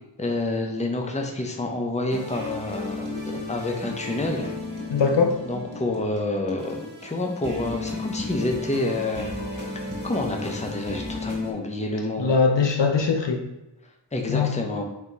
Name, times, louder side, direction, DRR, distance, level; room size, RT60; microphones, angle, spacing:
voice 1, 0.2-4.5 5.4-9.3 10.0-12.3 14.1-14.8, left 2 dB, 15° left, 2 dB, 0.6 m, -28 dB
sound 1, 2.1-11.5, left 2 dB, 45° right, 1.3 m, -35 dB
voice 2, 4.9-5.4 12.2-13.4 14.3-14.5, left 5 dB, 70° left, 3 dB, 0.6 m, -21 dB
3.6 x 2.8 x 4.0 m, 0.99 s
wide cardioid pair, 45°, 46 cm